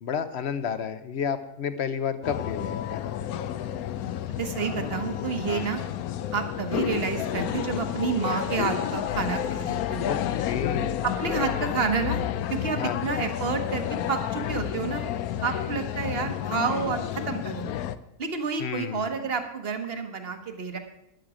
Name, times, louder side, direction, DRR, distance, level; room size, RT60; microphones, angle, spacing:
voice 1, 0.0-3.1 5.5-5.6 10.1-10.2 10.4-11.0 12.8-13.0 18.6-19.1, left 7 dB, 55° left, 11 dB, 0.9 m, -31 dB
sound 1, 2.2-18.0, left 11 dB, 75° left, 1.1 m, -30 dB
voice 2, 4.4-5.8 6.3-10.1 11.0-12.2 12.5-15.0 15.4-17.7 18.2-20.8, right 5 dB, 45° right, 7 dB, 1.3 m, -29 dB
13.0 x 10.5 x 4.9 m, 0.84 s
omnidirectional pair, 1.6 m